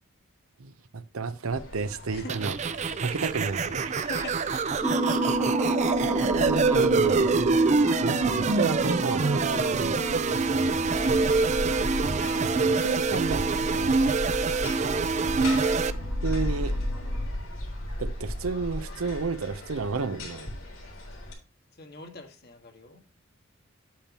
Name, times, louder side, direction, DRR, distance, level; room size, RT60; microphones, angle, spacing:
voice 1, 1.1-2.6 3.0-4.0 5.1-5.2 6.4-7.3 8.0-9.5 12.4-14.1 16.2-16.7 18.0-20.5, right 4 dB, 85° right, 0.7 m, -31 dB
sound 1, 1.5-21.3, left 1 dB, 85° left, 3.7 m, -37 dB
voice 2, 2.1-2.5 3.0-3.2 3.9-4.7 5.3-5.4 21.7-23.0, left 3 dB, 50° left, 1.5 m, -44 dB
sound 2, 2.3-15.9, right 4 dB, 35° right, 0.4 m, -25 dB
sound 3, 4.8-17.2, right 2 dB, 10° right, 1.1 m, -32 dB
8.6 x 8.4 x 2.9 m
head